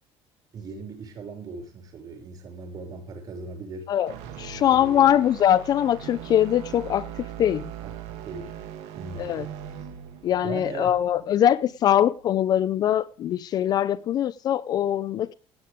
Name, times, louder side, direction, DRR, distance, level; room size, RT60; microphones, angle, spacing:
voice 1, 0.5-3.9 4.7-5.1 7.8-8.5 9.0-9.5 10.4-11.0, right 4 dB, 40° right, 6.3 m, -39 dB
voice 2, 3.9-7.7 9.2-9.5 10.2-15.3, left 10 dB, 40° left, 0.5 m, -22 dB
sound 1, 4.1-12.2, right 9 dB, 90° right, 1.9 m, -40 dB
16.0 x 9.6 x 3.6 m
cardioid pair, 170°, 10 cm